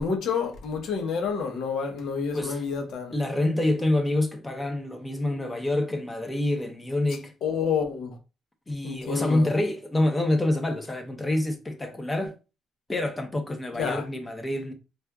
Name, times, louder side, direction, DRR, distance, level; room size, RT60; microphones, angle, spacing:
voice 1, 0.0-3.1 7.4-8.2 8.8-9.5 13.8-14.0, left 6 dB, 65° left, 0.9 m, -29 dB
voice 2, 3.1-7.3 8.7-12.3 12.9-14.7, left 1 dB, 15° left, 0.8 m, -27 dB
4.3 x 2.4 x 2.3 m
cardioid pair, 100°, 0 cm